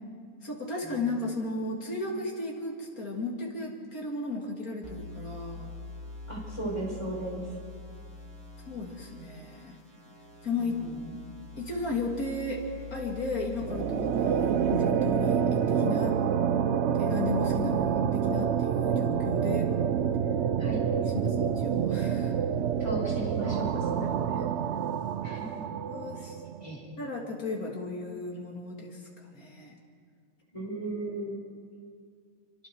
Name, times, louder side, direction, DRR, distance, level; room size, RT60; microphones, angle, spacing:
voice 1, 0.4-5.7 8.7-9.8 10.4-10.8 11.6-12.6 12.9-16.2 17.0-19.7 20.8-20.9 21.2-22.3 24.0-24.5 25.9-26.4 27.0-29.8, left 3 dB, 75° left, -1 dB, 3.3 m, -35 dB
sound 1, 4.8-14.8, left 2 dB, 40° right, 3.8 m, -44 dB
voice 2, 6.3-7.4 10.6-11.0 20.6-20.9 22.8-23.9 25.2-25.6 26.6-26.8 30.5-31.4, right 1 dB, 20° left, -3 dB, 4.6 m, -36 dB
sound 2, 13.6-26.7, right 8 dB, 60° right, 0.9 m, -27 dB
28.0 x 24.5 x 4.7 m, 2.1 s
omnidirectional pair, 1.6 m